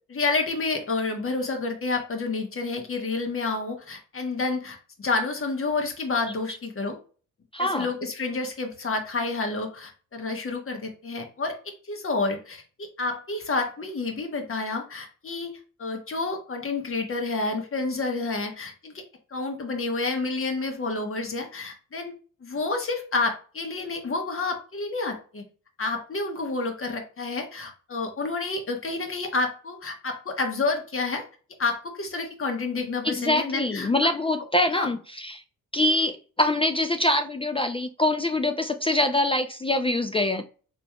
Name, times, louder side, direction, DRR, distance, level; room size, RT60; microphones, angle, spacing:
voice 1, 0.1-7.0 7.6-18.9 19.3-22.1 22.4-25.4 25.8-31.2 31.6-34.1 34.7-34.9, left 3 dB, 35° left, 4 dB, 1.3 m, -29 dB
voice 2, 7.5-7.9 33.0-35.4 35.7-40.4, left 1 dB, 15° left, 7 dB, 0.4 m, -24 dB
4.7 x 3.3 x 2.2 m, 0.38 s
hypercardioid pair, 50°, 37 cm